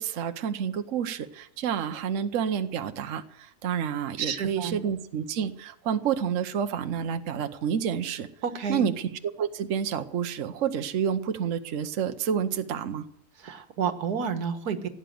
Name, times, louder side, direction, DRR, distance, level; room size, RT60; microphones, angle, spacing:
voice 1, 0.0-8.3 8.7-13.1, right 8 dB, 60° right, 8 dB, 1.2 m, -29 dB
voice 2, 4.2-4.8 8.4-8.8 13.4-14.9, right 6 dB, 85° right, 9 dB, 1.8 m, -30 dB
16.5 x 9.2 x 7.7 m, 0.74 s
omnidirectional pair, 1.6 m